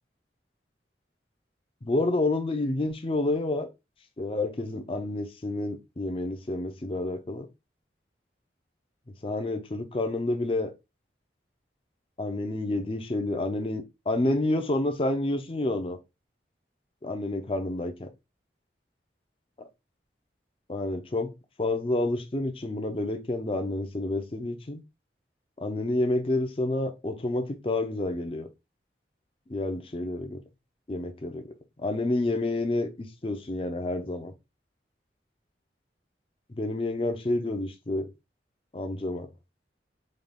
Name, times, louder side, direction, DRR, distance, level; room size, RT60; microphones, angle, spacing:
voice 1, 1.8-3.7 4.2-7.5 9.2-10.7 12.2-16.0 17.0-18.1 20.7-21.3 21.6-24.8 25.6-28.5 29.5-30.4 30.9-31.5 31.8-34.3 36.5-38.1 38.7-39.3, left 2 dB, 30° left, 0.5 m, -29 dB
3.8 x 2.4 x 3.4 m
head